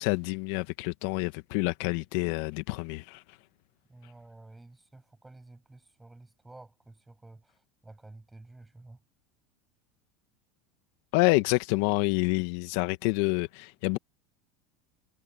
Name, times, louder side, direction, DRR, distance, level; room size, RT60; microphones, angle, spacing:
voice 1, 0.0-3.2 11.1-14.0, left 23 dB, 70° left, 1.4 m, -27 dB
voice 2, 3.9-7.5 7.8-9.0, right 2 dB, 10° right, 6.3 m, -51 dB
hypercardioid pair, 95°, 0 cm